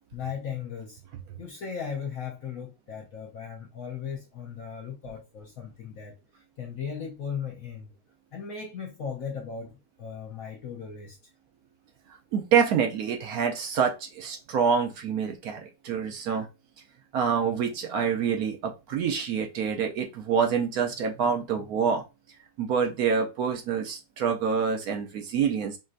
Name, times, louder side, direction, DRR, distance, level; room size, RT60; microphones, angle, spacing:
voice 1, 0.1-1.0 1.4-7.9 8.3-11.2, left 7 dB, 65° left, 0.8 m, -37 dB
voice 2, 12.3-16.5 17.1-22.0 22.6-25.8, right 6 dB, 70° right, 0.9 m, -26 dB
5.3 x 2.6 x 2.5 m
omnidirectional pair, 2.1 m